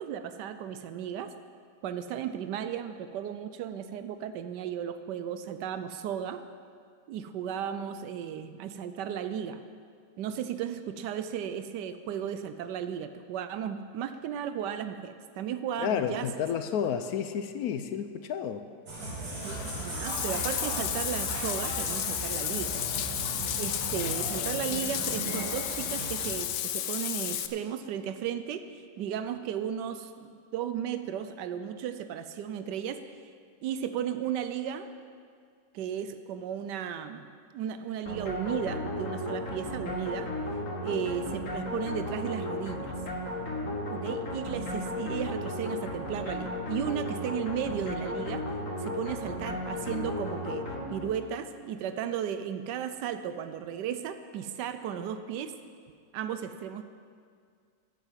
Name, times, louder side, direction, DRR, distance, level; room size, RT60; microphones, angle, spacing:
voice 1, 0.0-1.3 1.8-6.4 7.1-9.6 10.2-16.3 19.4-22.8 23.6-33.0 33.6-34.9 35.7-37.3 37.5-40.3 40.8-42.9 43.9-48.5 48.8-50.6 50.9-55.5 56.1-56.8, right 9 dB, 85° right, 10 dB, 1.2 m, -35 dB
voice 2, 15.8-18.6, left 8 dB, 70° left, 9 dB, 1.0 m, -31 dB
sound 1, 18.9-26.4, right 2 dB, 70° right, 2.6 m, -37 dB
Bathtub (filling or washing), 19.4-27.5, left 12 dB, 90° left, 1.3 m, -33 dB
sound 2, 38.1-51.4, left 1 dB, 50° left, 1.9 m, -35 dB
9.1 x 8.9 x 7.4 m, 2.1 s
omnidirectional pair, 1.8 m